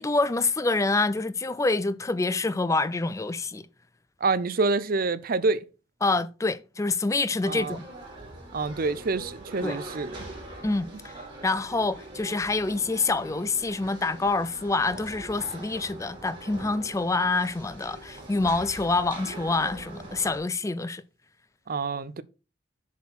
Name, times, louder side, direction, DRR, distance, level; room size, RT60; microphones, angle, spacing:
voice 1, 0.0-3.7 6.0-7.9 9.6-9.8 10.6-10.9 11.4-21.0, left 3 dB, 15° left, 0.4 m, -26 dB
voice 2, 4.2-5.7 7.5-7.8 8.5-10.2 21.7-22.2, right 3 dB, 50° right, 0.5 m, -27 dB
sound 1, 7.4-20.4, right 2 dB, 25° right, 3.5 m, -43 dB
7.1 x 4.4 x 5.8 m
head